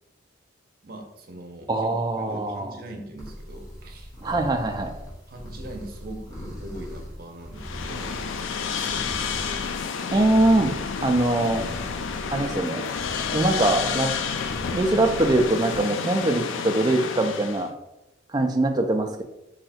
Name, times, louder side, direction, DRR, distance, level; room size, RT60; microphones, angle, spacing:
voice 1, 0.8-4.1 5.3-8.2 8.7-9.3 14.1-14.2 16.2-16.3, right 1 dB, 50° right, 2 dB, 0.7 m, -42 dB
voice 2, 1.7-2.7 4.2-4.9 10.1-10.7 11.0-11.6 12.3-12.8 13.3-14.1 14.7-17.7 18.3-19.2, right 2 dB, 20° right, 4 dB, 0.3 m, -22 dB
sound 1, 3.2-15.8, equal, 20° left, 1.1 m, -40 dB
sound 2, 7.6-17.7, left 6 dB, 75° left, 0.3 m, -30 dB
3.2 x 2.8 x 4.1 m, 0.90 s
head